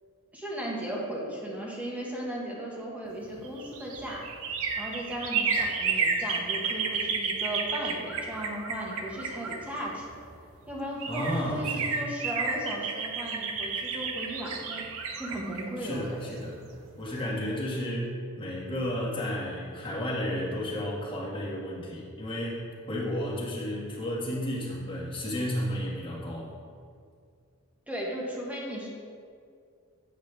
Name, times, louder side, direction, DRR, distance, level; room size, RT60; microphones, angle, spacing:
voice 1, 0.3-4.2 4.8-10.1 10.7-14.8 15.2-16.5 27.9-28.9, right 1 dB, 5° right, -4 dB, 1.4 m, -36 dB
Spfd lake bird song, 3.3-10.1 10.7-10.8 11.0-16.8 17.1-17.2, right 5 dB, 65° right, 0.8 m, -31 dB
voice 2, 11.1-11.9 15.8-16.6 17.0-26.5, equal, 25° left, -6 dB, 1.8 m, -32 dB
8.2 x 7.8 x 3.4 m, 2.2 s
head